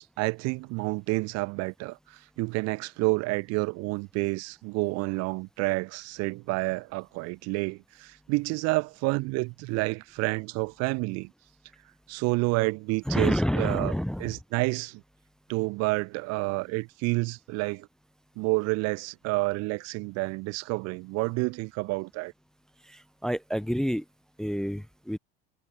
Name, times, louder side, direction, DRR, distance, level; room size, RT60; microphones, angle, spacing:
voice 1, 0.0-11.3 12.1-15.0 15.5-17.9 18.4-22.3, right 26 dB, 55° right, 0.5 m, -29 dB
voice 2, 13.1-14.3 22.9-24.0 24.4-25.2, equal, ahead, 0.5 m, -28 dB
supercardioid pair, 95°, 30 cm